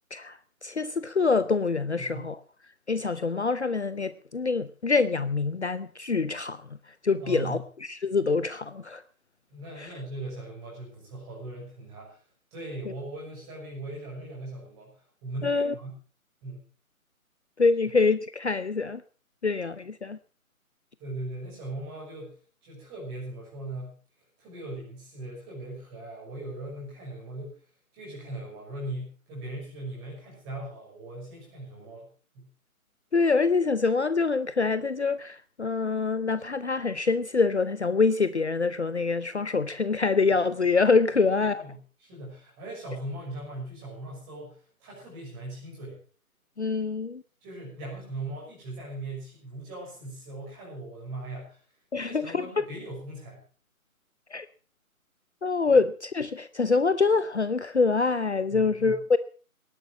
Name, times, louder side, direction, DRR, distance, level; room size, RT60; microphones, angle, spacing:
voice 1, 0.1-2.4 2.9-9.0 9.8-9.9 15.4-15.7 17.6-19.0 19.4-20.2 33.1-41.6 46.6-47.2 51.9-52.7 54.3-54.5 55.4-59.2, left 4 dB, 50° left, 0.8 m, -25 dB
voice 2, 2.0-2.3 7.2-7.6 9.5-12.2 12.5-15.9 16.4-16.6 21.0-22.4 22.6-24.0 24.4-27.6 27.9-32.1 32.3-32.5 41.1-46.0 47.4-51.6 52.0-53.4 58.5-59.0, right 2 dB, 10° right, 6.5 m, -39 dB
19.0 x 11.0 x 6.0 m
figure-of-eight pair, 155°, 43 cm